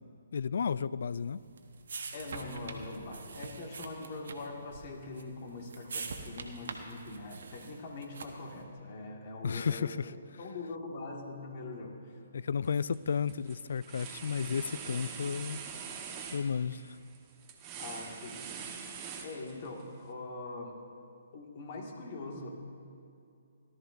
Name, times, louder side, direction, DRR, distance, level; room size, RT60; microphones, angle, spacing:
voice 1, 0.3-1.4 9.4-10.1 12.3-15.7 16.3-16.8, left 6 dB, 65° left, 18 dB, 0.3 m, -32 dB
sound 1, 1.1-8.6, right 4 dB, 65° right, 1.1 m, -44 dB
voice 2, 2.1-9.9 10.4-12.1 17.8-18.6 19.2-20.8 21.3-22.5, left 2 dB, 45° left, 1 dB, 1.9 m, -42 dB
sound 2, 12.6-13.0 13.3-19.8, right 6 dB, 25° right, 1.1 m, -44 dB
17.5 x 12.5 x 2.6 m, 2.6 s
figure-of-eight pair, 135°, 0 cm